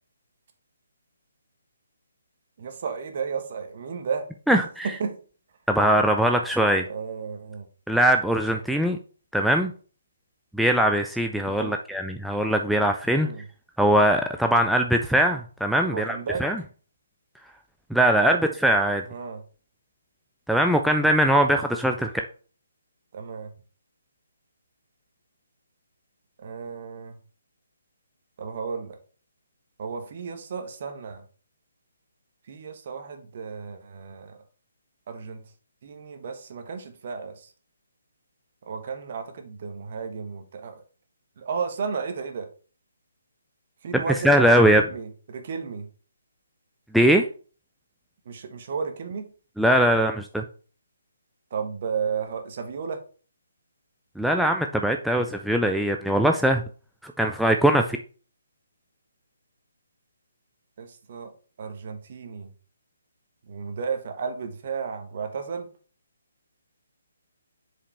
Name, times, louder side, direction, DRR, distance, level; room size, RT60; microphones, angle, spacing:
voice 1, 2.6-4.6 4.8-5.2 6.9-7.7 11.4-11.8 13.1-13.4 15.8-16.4 18.3-18.5 19.1-19.4 23.1-23.5 26.4-27.2 28.4-29.0 29.8-31.2 32.5-34.4 35.1-35.4 35.8-37.5 38.7-40.8 41.4-42.5 43.8-45.9 48.2-49.2 51.5-53.0 60.8-61.3 61.6-62.5 63.5-65.7, right 5 dB, 45° right, 6 dB, 1.3 m, -33 dB
voice 2, 4.5-4.9 5.7-6.8 7.9-9.0 9.3-9.7 10.5-13.3 13.8-16.6 17.9-18.4 18.6-19.0 20.5-22.1 44.2-44.8 46.9-47.2 49.6-50.4 54.2-56.6 57.0-58.0, right 1 dB, ahead, 3 dB, 0.4 m, -21 dB
6.9 x 4.9 x 3.4 m, 0.39 s
figure-of-eight pair, 135°, 0 cm